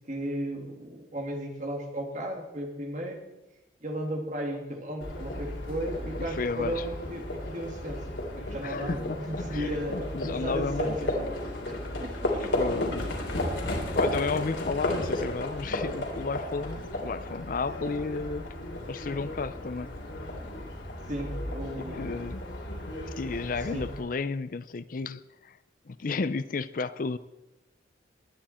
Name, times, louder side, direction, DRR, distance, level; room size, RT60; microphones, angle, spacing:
voice 1, 0.0-3.2 3.8-8.0 8.3-11.1 11.7-12.5 21.1-22.2 23.7-23.9, right 1 dB, 40° right, 2.5 m, -35 dB
Livestock farm animals working animals, 5.0-24.0, left 1 dB, 85° left, 3.7 m, -34 dB
voice 2, 6.3-6.8 8.6-9.2 9.5-11.0 12.4-13.1 13.9-18.5 18.9-19.9 21.6-22.4 23.2-25.6 25.9-27.2, left 4 dB, 45° left, 0.5 m, -32 dB
20.0 x 11.0 x 4.3 m
head